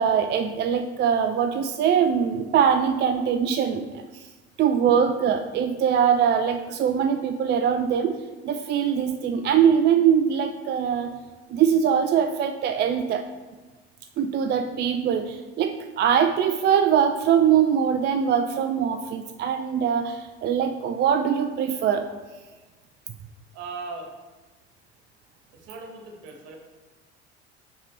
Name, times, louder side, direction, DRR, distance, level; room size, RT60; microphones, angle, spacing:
voice 1, 0.0-4.2 4.6-11.1 11.5-13.2 14.2-22.1, right 8 dB, 30° right, 7 dB, 0.4 m, -22 dB
voice 2, 23.5-24.1 25.7-26.6, right 4 dB, 55° right, 3 dB, 1.4 m, -38 dB
5.7 x 5.4 x 4.4 m, 1.2 s
figure-of-eight pair, 60°, 34 cm